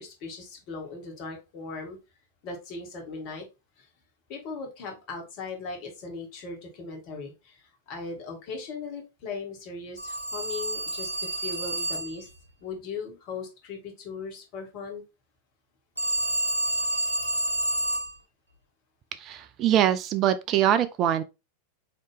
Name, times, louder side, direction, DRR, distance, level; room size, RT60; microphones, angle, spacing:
voice 1, 0.0-2.0 2.4-3.4 3.8-3.9 4.3-7.6 7.9-12.3 12.6-15.0, left 4 dB, 40° left, 1.6 m, -38 dB
Telephone, 10.0-12.3 16.0-18.2, right 1 dB, 80° left, 1.4 m, -29 dB
voice 2, 19.2-21.2, right 11 dB, 35° right, 0.3 m, -23 dB
4.2 x 2.9 x 3.3 m
figure-of-eight pair, 90°, 0 cm